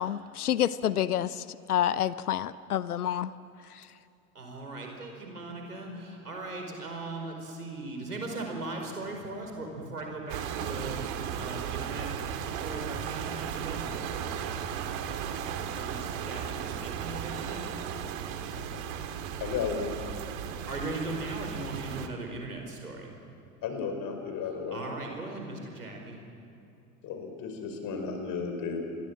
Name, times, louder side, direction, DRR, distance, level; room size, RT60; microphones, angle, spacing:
voice 1, 0.0-1.3 1.7-3.3, left 10 dB, 80° left, 17 dB, 0.8 m, -28 dB
voice 2, 4.4-11.1 11.4-13.8 15.7-17.6 20.7-23.1 24.7-26.2, right 2 dB, 90° right, 2 dB, 5.1 m, -38 dB
sound 1, 10.3-22.1, right 8 dB, 60° right, 2.6 m, -35 dB
voice 3, 19.4-19.9 23.6-24.8 27.0-28.8, left 5 dB, 45° left, 5 dB, 5.5 m, -33 dB
28.0 x 22.0 x 7.6 m, 2.7 s
figure-of-eight pair, 75°, 44 cm